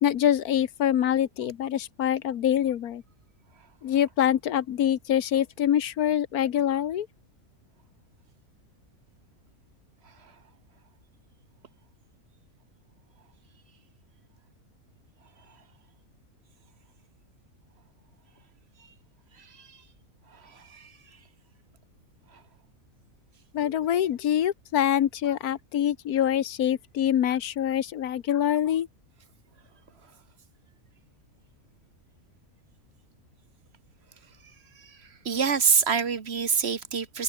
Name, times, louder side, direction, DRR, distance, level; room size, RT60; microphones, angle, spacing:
voice 1, 0.0-3.0 3.8-7.1 23.5-28.9, left 10 dB, 90° left, 1.5 m, -25 dB
voice 2, 19.4-19.8 20.3-20.9 22.3-22.4 34.8-37.2, right 6 dB, 45° right, 1.5 m, -27 dB
omnidirectional pair, 1.5 m